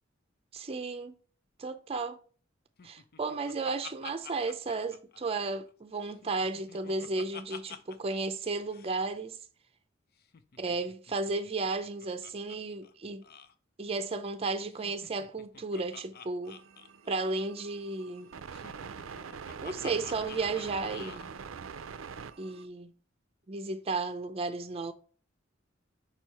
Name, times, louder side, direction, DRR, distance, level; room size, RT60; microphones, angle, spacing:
voice 1, 0.5-1.1 1.6-2.2 2.8-9.3 10.6-13.2 13.8-16.6 17.1-18.3 19.6-21.4 22.4-22.9 23.5-24.9, right 3 dB, 30° right, 0.5 m, -34 dB
Laughter, 2.8-5.7 6.1-8.2 8.4-8.5 8.7-9.0 10.2-12.6 12.8-12.9 13.2-13.5 14.7-17.5 18.5-21.3, left 6 dB, 50° left, 0.6 m, -49 dB
sound 1, 16.4-22.6, right 6 dB, 75° right, 0.5 m, -44 dB
5.5 x 4.6 x 5.5 m
head